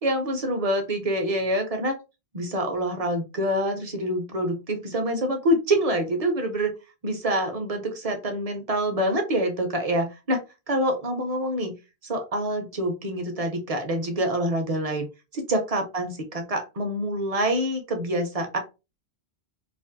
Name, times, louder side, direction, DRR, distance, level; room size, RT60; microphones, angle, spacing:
voice 1, 0.0-1.9 2.3-6.7 7.0-10.4 10.7-11.7 12.0-15.1 15.3-18.6, right 1 dB, 45° right, 5 dB, 0.6 m, -26 dB
2.5 x 2.4 x 2.5 m, 0.28 s
omnidirectional pair, 1.1 m